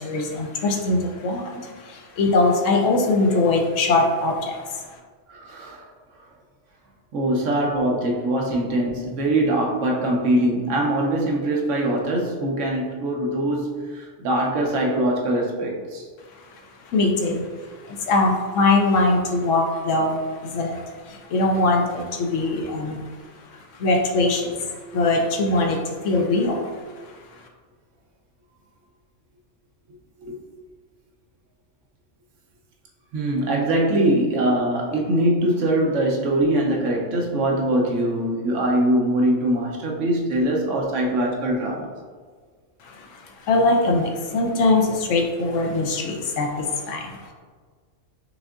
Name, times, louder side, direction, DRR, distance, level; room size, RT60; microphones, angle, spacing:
voice 1, 0.0-4.8 16.3-16.5 16.8-23.1 23.7-26.7 27.0-27.1 42.8-47.3, left 2 dB, 75° left, 2 dB, 1.0 m, -22 dB
voice 2, 5.3-5.9 7.1-16.1 30.2-30.4 33.1-41.9, right 1 dB, 70° right, -1 dB, 1.1 m, -22 dB
5.3 x 3.6 x 2.4 m, 1.5 s
omnidirectional pair, 1.3 m